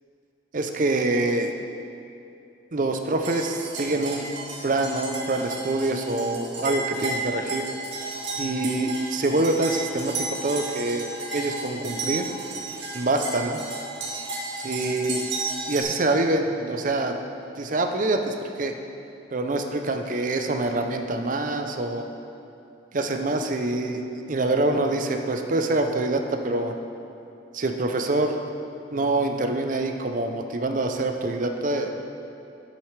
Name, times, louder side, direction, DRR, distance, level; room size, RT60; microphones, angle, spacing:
voice 1, 0.5-1.5 2.7-4.3 4.6-7.7 8.4-10.1 10.4-11.1 11.3-12.3 12.9-13.6 14.6-15.2 15.7-17.2 17.6-18.7 19.3-22.1 22.9-26.7 27.5-28.4 28.9-31.9, right 2 dB, 40° right, 5 dB, 0.5 m, -25 dB
sound 1, 3.2-15.8, right 2 dB, 75° right, 1.7 m, -33 dB
10.5 x 7.9 x 3.3 m, 2.8 s
head